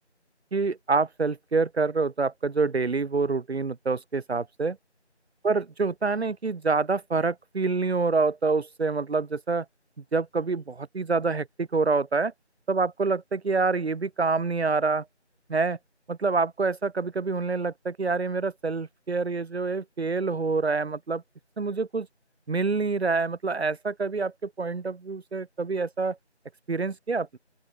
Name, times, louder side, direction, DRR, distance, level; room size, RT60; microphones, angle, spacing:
voice 1, 0.5-4.8 5.4-9.6 10.1-12.3 12.7-15.0 15.5-15.8 16.1-21.2 21.6-22.1 22.5-26.2 26.7-27.4, right 4 dB, 65° right, 0.5 m, -26 dB
open air
figure-of-eight pair, 180°, 35 cm